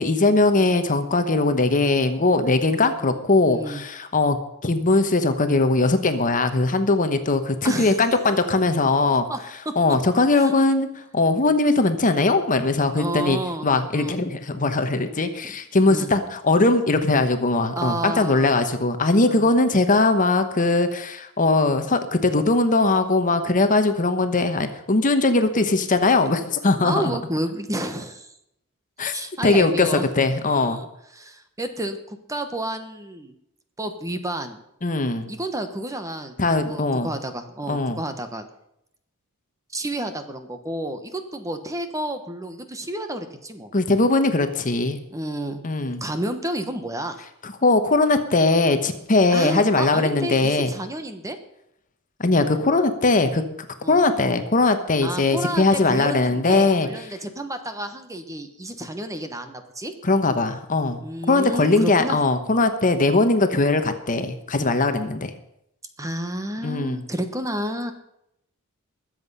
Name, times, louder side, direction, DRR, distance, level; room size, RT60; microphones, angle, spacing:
voice 1, 0.0-4.4 4.6-9.2 9.8-10.9 11.1-27.0 29.0-29.1 29.4-30.8 34.8-35.3 36.4-37.1 37.7-38.0 43.7-45.0 45.6-46.0 47.4-50.7 52.2-53.5 53.9-56.9 60.0-61.0 61.3-65.3 66.6-67.0, left 3 dB, 40° left, 9 dB, 1.0 m, -20 dB
voice 2, 3.5-3.8 7.6-7.9 9.3-9.4 9.6-9.7 10.3-10.5 13.0-13.7 13.9-14.2 15.4-15.6 15.9-16.1 17.8-18.5 19.3-19.5 26.8-28.3 29.1-30.1 30.5-30.9 31.1-33.3 33.8-34.6 35.3-36.4 36.7-38.4 39.7-43.7 45.1-45.6 46.0-47.2 49.3-51.4 53.8-54.0 55.0-59.9 61.0-62.2 66.0-67.9, right 1 dB, 15° right, 8 dB, 1.1 m, -30 dB
21.0 x 7.6 x 5.5 m, 0.79 s
head